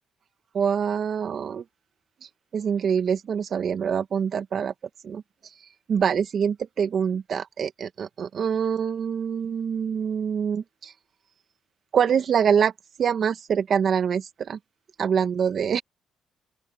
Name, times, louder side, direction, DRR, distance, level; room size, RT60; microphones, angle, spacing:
voice 1, 0.5-1.6 2.5-4.7 5.0-5.2 5.9-10.9 11.9-12.7 13.0-14.6 15.0-15.8, right 7 dB, 55° right, 1.9 m, -25 dB
open air
cardioid pair, 85°, 0 cm